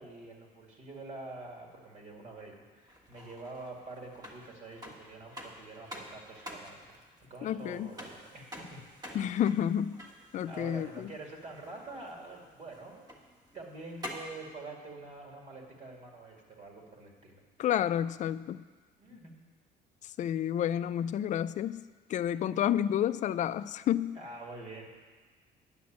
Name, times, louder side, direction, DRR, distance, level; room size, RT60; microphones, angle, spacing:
voice 1, 0.0-7.0 7.3-8.8 9.2-9.4 10.5-13.1 13.5-17.4 19.0-19.4 22.3-22.4 24.1-24.9, right 2 dB, 45° right, 0 dB, 2.1 m, -46 dB
sound 1, 2.9-14.5, left 1 dB, 25° right, 1.5 m, -49 dB
voice 2, 7.4-7.9 9.1-10.0 10.3-11.1 17.6-18.6 20.2-21.8 22.1-24.2, left 10 dB, 45° left, 15 dB, 0.4 m, -30 dB
9.6 x 6.1 x 7.3 m, 1.4 s
cardioid pair, 110°, 17 cm